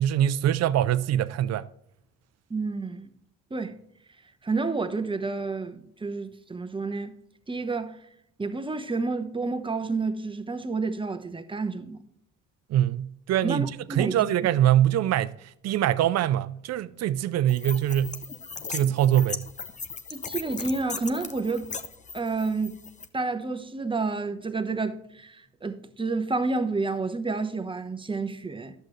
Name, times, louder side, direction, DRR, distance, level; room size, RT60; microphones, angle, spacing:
voice 1, 0.0-1.7 12.7-13.7 14.0-15.3 15.6-18.2 18.7-19.4, right 11 dB, 60° right, 0.6 m, -23 dB
voice 2, 2.5-3.1 3.5-3.8 4.4-7.1 7.5-8.0 8.4-12.0 13.4-14.3 20.1-21.7 22.1-22.8 23.1-28.7, right 3 dB, 15° right, 1.0 m, -30 dB
sound 1, 17.5-23.1, left 4 dB, 25° left, 0.8 m, -37 dB
11.0 x 7.8 x 3.2 m
supercardioid pair, 70°, 29 cm